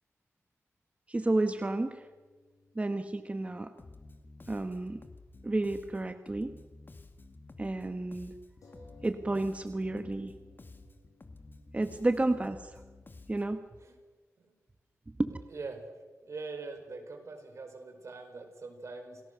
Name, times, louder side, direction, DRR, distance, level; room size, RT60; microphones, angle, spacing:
sound 1, 1.1-5.0 5.3-5.4 8.6-13.8, left 2 dB, 85° left, 7.3 m, -62 dB
voice 1, 1.1-2.1 2.7-3.7 4.5-5.0 5.4-6.5 7.6-8.3 9.0-10.3 11.7-12.8 13.3-13.6 15.2-15.3, right 2 dB, 25° right, 9 dB, 1.1 m, -31 dB
Bass guitar, 3.8-13.7, left 3 dB, 40° left, 2.4 m, -52 dB
voice 2, 16.2-19.2, right 3 dB, 65° right, 5 dB, 5.0 m, -43 dB
28.5 x 19.5 x 6.8 m, 1.3 s
wide cardioid pair, 90°, 5 cm